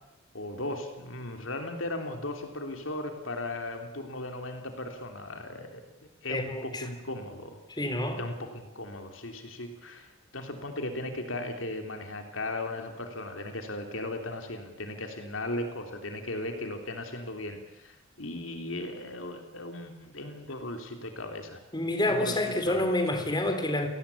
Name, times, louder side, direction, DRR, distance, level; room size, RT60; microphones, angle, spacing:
voice 1, 0.3-5.8 6.2-7.6 8.2-21.6 22.1-22.4 22.7-22.9, left 1 dB, 70° left, 5 dB, 3.3 m, -37 dB
voice 2, 6.3-6.9 7.8-8.2 21.7-23.9, left 1 dB, 20° left, 7 dB, 3.6 m, -28 dB
30.0 x 18.5 x 8.6 m, 0.99 s
head